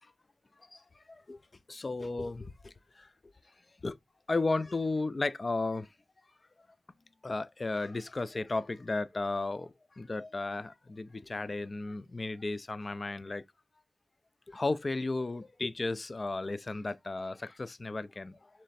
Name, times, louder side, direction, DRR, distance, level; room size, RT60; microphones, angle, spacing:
voice 1, 1.1-1.4 1.7-3.1 3.8-4.0 4.3-5.9 7.2-13.4 14.5-18.5, left 3 dB, 35° left, 0.3 m, -34 dB
3.2 x 3.2 x 4.0 m
wide cardioid pair, 115°, 0 cm